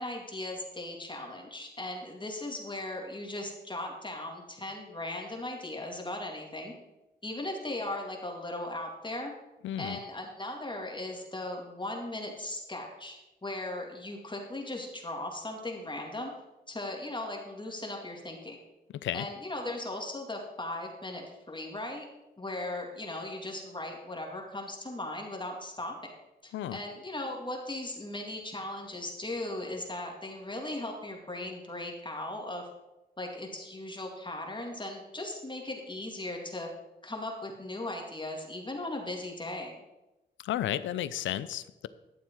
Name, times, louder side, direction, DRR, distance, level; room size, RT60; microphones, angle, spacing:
voice 1, 0.0-6.7 7.2-9.3 9.8-16.3 16.7-18.6 19.1-22.1 22.4-26.1 26.4-32.7 33.2-36.7 37.0-39.8, left 1 dB, 25° left, 1 dB, 2.3 m, -38 dB
voice 2, 9.6-10.0 19.0-19.3 26.5-26.8 40.4-41.9, left 12 dB, 90° left, 16 dB, 0.5 m, -33 dB
12.0 x 7.2 x 4.6 m, 0.99 s
supercardioid pair, 50°, 19 cm